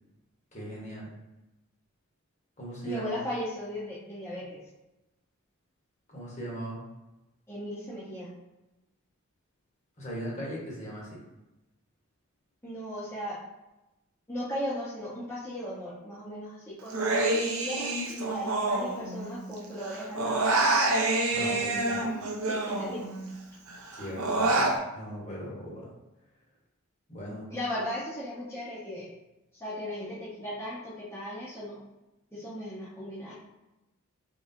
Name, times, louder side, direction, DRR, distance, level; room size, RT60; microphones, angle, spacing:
voice 1, 0.5-1.1 2.6-3.2 6.1-6.8 10.0-11.2 21.3-22.1 23.9-25.9 27.1-27.5, equal, 30° left, -5 dB, 1.1 m, -39 dB
voice 2, 2.8-4.6 7.5-8.3 12.6-13.4 14.3-20.5 21.4-22.1 22.4-23.0 27.5-29.1 29.6-31.8 32.3-33.3, equal, 10° left, -11 dB, 0.8 m, -37 dB
Human voice, 16.9-19.5 19.8-23.3 23.7-24.8, right 2 dB, 75° right, 0.5 m, -27 dB
3.7 x 3.1 x 2.7 m, 0.98 s
head